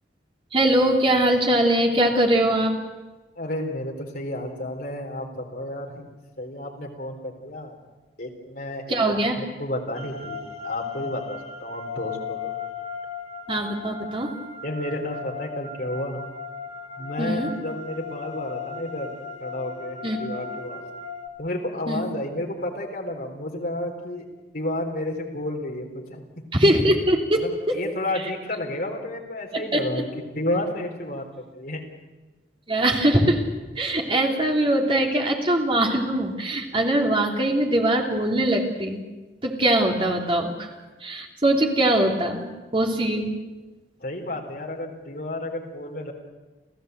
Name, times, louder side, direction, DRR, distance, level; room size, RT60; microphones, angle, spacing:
voice 1, 0.5-2.7 8.9-9.4 13.5-14.3 17.2-17.5 20.0-20.2 21.9-22.0 26.5-27.4 27.7-27.8 29.5-29.8 32.7-33.5 33.8-39.0 39.4-40.7 41.0-42.5 42.7-43.4, right 1 dB, 30° right, 1 dB, 3.1 m, -22 dB
voice 2, 3.4-6.1 6.4-7.8 8.2-12.5 14.6-16.2 17.0-19.1 19.4-20.8 21.4-24.3 24.5-26.3 27.4-30.0 30.4-31.8 44.0-46.1, left 1 dB, 55° left, 1 dB, 3.9 m, -31 dB
sound 1, 9.9-21.3, left 5 dB, 40° left, 1.6 m, -36 dB
29.5 x 14.5 x 8.2 m, 1.2 s
head